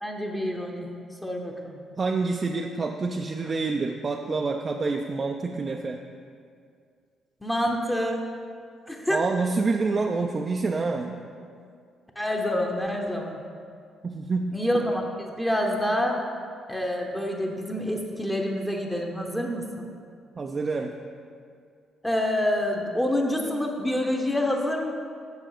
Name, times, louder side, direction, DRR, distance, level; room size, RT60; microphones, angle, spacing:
voice 1, 0.0-0.9 1.2-1.8 7.4-8.2 8.9-9.2 12.2-13.4 14.5-16.2 16.7-19.9 22.0-24.9, left 1 dB, 10° left, 0 dB, 0.9 m, -27 dB
voice 2, 2.0-6.0 9.1-11.2 14.0-14.5 20.4-20.9, right 3 dB, 35° right, 2 dB, 0.4 m, -27 dB
7.7 x 6.2 x 4.9 m, 2.2 s
cardioid pair, 90°, 0 cm